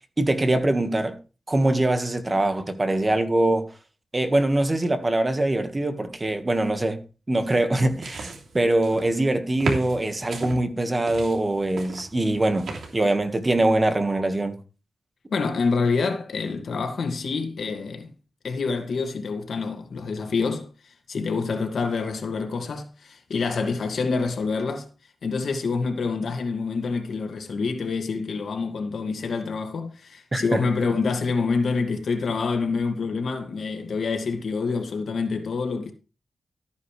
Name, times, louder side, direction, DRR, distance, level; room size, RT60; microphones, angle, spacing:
voice 1, 0.2-1.1 1.5-3.7 4.1-7.0 7.3-14.6 30.3-30.6, right 1 dB, 25° right, 1.6 m, -23 dB
sound 1, 7.7-9.2 9.6-10.6 11.1-13.0, right 3 dB, 90° right, 3.0 m, -35 dB
voice 2, 15.3-18.1 18.4-24.9 25.2-35.9, left 4 dB, 75° left, 2.1 m, -27 dB
13.5 x 9.4 x 3.3 m
wide cardioid pair, 90°, 0 cm